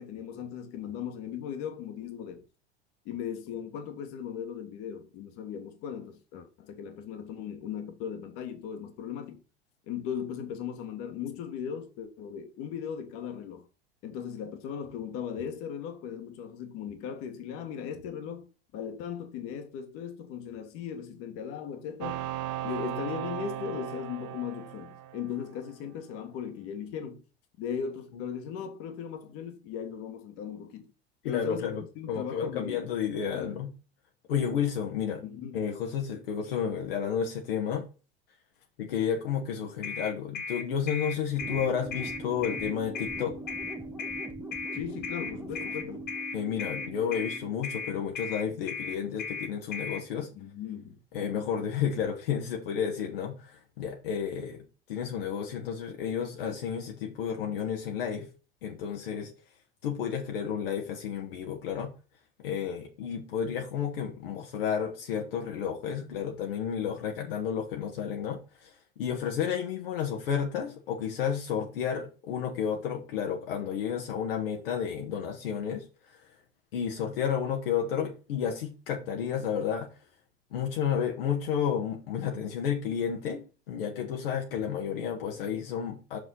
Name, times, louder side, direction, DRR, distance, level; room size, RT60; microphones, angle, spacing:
voice 1, 0.0-2.4 3.0-9.4 9.9-13.7 14.0-18.5 18.7-22.3 22.6-27.2 27.6-30.9 31.3-31.7 31.9-32.8 33.2-33.6 35.2-35.6 44.7-46.1 50.3-51.5, left 8 dB, 45° left, 1.6 m, -38 dB
sound 1, 22.0-25.7, right 12 dB, 45° right, 0.6 m, -37 dB
voice 2, 31.2-33.7 34.3-35.2 35.5-37.8 38.8-43.3 46.3-50.3 51.1-54.6 54.9-58.3 58.6-59.3 59.8-61.9 62.4-75.8 76.7-79.9 80.5-86.2, left 8 dB, 65° left, 1.4 m, -31 dB
sound 2, 39.8-50.0, left 4 dB, 30° left, 1.8 m, -36 dB
sound 3, 41.4-47.9, right 2 dB, 5° right, 0.8 m, -41 dB
6.1 x 5.1 x 3.8 m
figure-of-eight pair, 85°, 31 cm